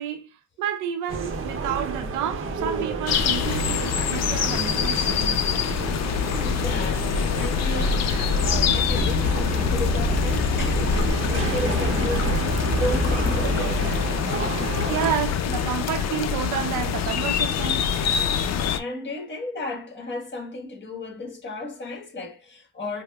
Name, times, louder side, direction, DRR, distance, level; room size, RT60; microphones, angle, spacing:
voice 1, 0.0-5.7 14.5-14.6 14.9-17.9, right 9 dB, 90° right, 0.7 m, -30 dB
sound 1, 1.1-15.1, right 3 dB, 45° right, 0.7 m, -30 dB
sound 2, 3.1-18.8, left 6 dB, 60° left, 0.5 m, -25 dB
voice 2, 6.3-13.9 18.8-23.0, left 2 dB, 40° left, 1.4 m, -34 dB
sound 3, 8.4-13.6, left 2 dB, ahead, 1.2 m, -29 dB
4.8 x 2.0 x 2.3 m
cardioid pair, 90°, 30 cm